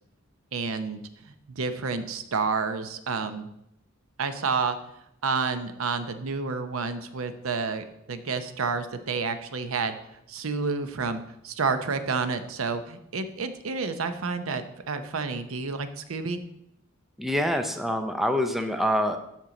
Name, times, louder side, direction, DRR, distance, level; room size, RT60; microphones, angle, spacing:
voice 1, 0.5-3.5 4.2-4.8 5.2-10.0 10.3-16.4, right 4 dB, 85° right, 10 dB, 0.7 m, -30 dB
voice 2, 17.2-19.2, equal, ahead, 6 dB, 0.5 m, -25 dB
13.0 x 4.5 x 3.9 m, 0.78 s
head